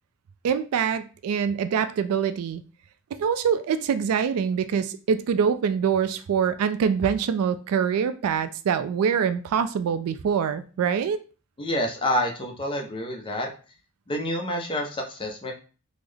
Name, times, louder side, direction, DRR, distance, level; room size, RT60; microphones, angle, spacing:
voice 1, 0.4-2.6 3.1-11.2, right 7 dB, 70° right, 0.3 m, -24 dB
voice 2, 11.6-13.5 14.1-15.5, left 1 dB, 25° left, 0.5 m, -28 dB
3.6 x 2.0 x 3.3 m
head